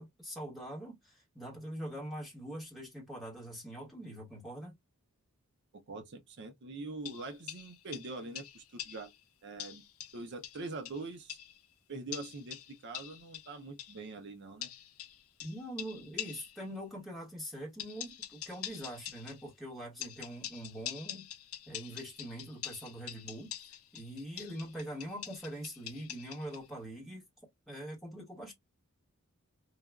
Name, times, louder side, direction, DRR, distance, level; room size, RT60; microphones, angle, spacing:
voice 1, 0.0-4.7 15.4-21.3 21.7-23.5 23.9-27.3 27.7-28.5, right 1 dB, ahead, 1.1 m, -43 dB
voice 2, 5.7-9.1 9.4-9.8 10.1-11.4 11.9-14.7, right 3 dB, 50° right, 0.5 m, -43 dB
sound 1, 7.0-9.2 9.6-11.6 12.1-14.0 14.6-16.6 17.8-19.5 20.0-26.7, left 11 dB, 70° left, 0.5 m, -45 dB
3.2 x 2.2 x 2.3 m
head